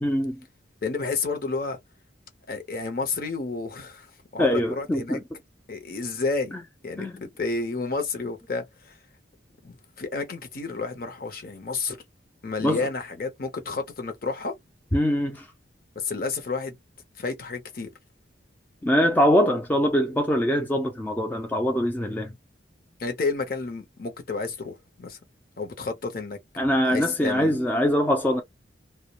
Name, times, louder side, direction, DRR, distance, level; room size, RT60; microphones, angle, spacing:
voice 1, 0.0-0.4 4.4-5.2 7.0-7.1 12.6-12.8 14.9-15.5 18.8-22.3 26.6-28.4, equal, 10° left, 0.3 m, -23 dB
voice 2, 0.8-1.8 2.5-4.1 4.3-5.2 5.7-6.5 6.8-9.0 9.6-12.0 12.4-14.5 16.0-16.8 17.2-17.9 23.0-25.2 25.6-26.4 26.8-27.6, left 4 dB, 50° left, 0.7 m, -30 dB
2.2 x 2.1 x 2.8 m
head